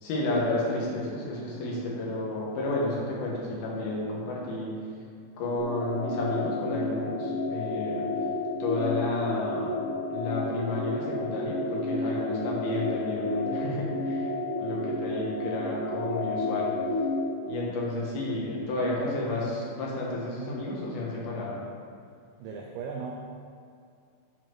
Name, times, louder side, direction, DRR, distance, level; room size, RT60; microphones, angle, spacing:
voice 1, 0.0-4.7 5.4-8.0 8.6-9.7 10.1-14.3 14.6-16.7 17.5-21.6, left 2 dB, 70° left, -4 dB, 3.2 m, -31 dB
sound 1, 5.6-17.5, left 2 dB, 65° right, 3.6 m, -31 dB
voice 2, 22.4-23.1, right 5 dB, 85° right, 0 dB, 1.9 m, -37 dB
10.5 x 4.4 x 4.6 m, 2.3 s
omnidirectional pair, 4.7 m